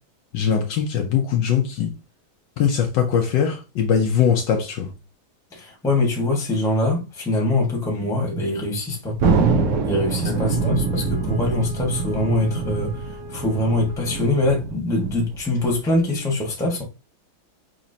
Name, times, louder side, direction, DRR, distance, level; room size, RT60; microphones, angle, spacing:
voice 1, 0.3-1.9 2.6-4.9 10.3-10.4, left 7 dB, 70° left, 1.2 m, -21 dB
voice 2, 5.5-9.2 9.8-16.8, left 2 dB, ahead, 1.0 m, -23 dB
Thunder, 9.2-16.0, right 4 dB, 70° right, 0.7 m, -24 dB
Wind instrument woodwind instrument, 10.1-14.7, left 4 dB, 30° right, 1.0 m, -42 dB
6.1 x 2.9 x 2.8 m
omnidirectional pair, 2.2 m